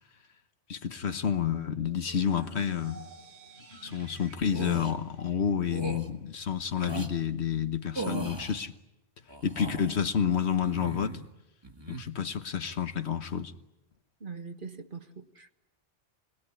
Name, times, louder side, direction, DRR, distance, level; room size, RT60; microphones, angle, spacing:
voice 1, 0.7-3.0 3.8-8.7 9.4-11.2 11.9-13.5, left 8 dB, 75° left, 1.5 m, -29 dB
sound 1, 2.0-6.0, right 1 dB, 65° right, 5.5 m, -51 dB
sound 2, 4.5-4.9 5.7-6.1 6.8-7.1 7.9-8.6 9.3-10.0 10.6-11.3 11.6-12.0, right 2 dB, 25° right, 1.8 m, -37 dB
voice 2, 14.2-15.5, right 5 dB, 50° right, 1.6 m, -42 dB
29.0 x 20.0 x 10.0 m
omnidirectional pair, 1.1 m